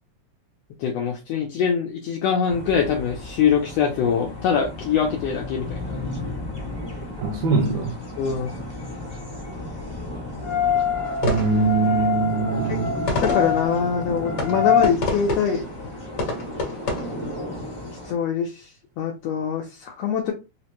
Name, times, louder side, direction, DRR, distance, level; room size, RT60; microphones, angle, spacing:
voice 1, 0.8-6.0 8.2-8.5 12.7-15.6 18.0-18.7 19.0-20.3, left 7 dB, 80° left, 1.5 m, -24 dB
sound 1, 2.5-18.1, left 1 dB, 20° left, 0.7 m, -34 dB
voice 2, 7.2-7.9 11.2-12.9, right 4 dB, 75° right, 1.6 m, -22 dB
sound 2, 10.4-14.9, left 8 dB, 65° left, 1.2 m, -25 dB
sound 3, 11.0-17.8, left 2 dB, 50° left, 1.3 m, -30 dB
4.9 x 2.1 x 2.9 m
omnidirectional pair, 3.5 m